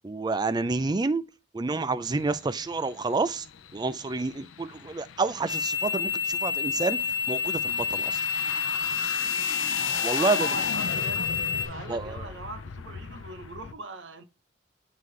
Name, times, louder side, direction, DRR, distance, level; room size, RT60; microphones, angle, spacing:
voice 1, 0.0-1.2 1.5-3.5 3.7-8.2 10.0-10.5 11.9-12.2, right 3 dB, 20° right, 0.4 m, -29 dB
sound 1, 2.0-13.7, left 7 dB, 80° left, 0.5 m, -38 dB
sound 2, 5.5-11.7, left 6 dB, 60° left, 1.3 m, -29 dB
voice 2, 9.4-11.3 11.7-14.2, right 3 dB, 65° right, 0.7 m, -41 dB
9.3 x 3.7 x 3.2 m
head